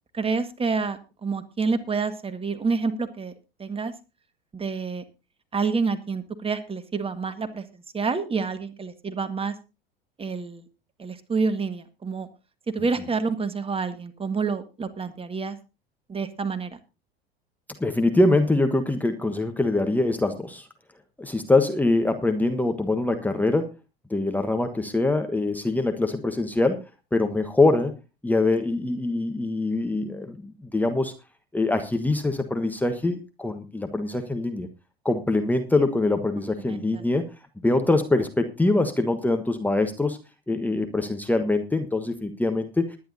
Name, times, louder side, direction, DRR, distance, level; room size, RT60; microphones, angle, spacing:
voice 1, 0.1-3.3 3.6-3.9 4.5-5.0 5.5-7.6 7.9-9.5 10.2-10.6 11.0-12.3 12.7-15.6 16.1-16.8 36.7-37.0, right 4 dB, 20° right, 11 dB, 1.6 m, -28 dB
voice 2, 17.8-20.7 21.2-23.7 24.1-26.8 27.1-27.9 28.2-31.1 31.5-34.7 35.0-37.3 37.6-40.2 40.5-43.0, left 2 dB, 5° left, 6 dB, 1.3 m, -23 dB
20.5 x 10.5 x 2.7 m, 0.29 s
figure-of-eight pair, 80°, 30 cm